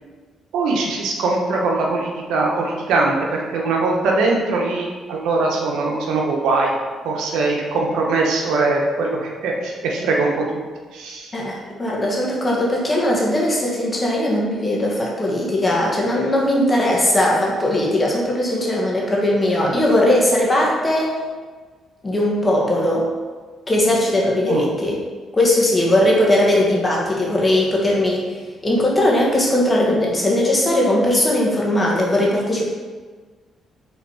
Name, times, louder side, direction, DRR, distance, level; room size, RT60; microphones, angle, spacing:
voice 1, 0.5-6.7 7.0-10.6 10.9-11.3 24.5-24.6, right 3 dB, 85° right, -1 dB, 1.2 m, -21 dB
voice 2, 11.3-21.1 22.0-23.0 23.7-25.0 25.3-32.6, left 1 dB, 25° left, -3 dB, 1.8 m, -19 dB
5.7 x 3.8 x 4.9 m, 1.4 s
cardioid pair, 90°, 0 cm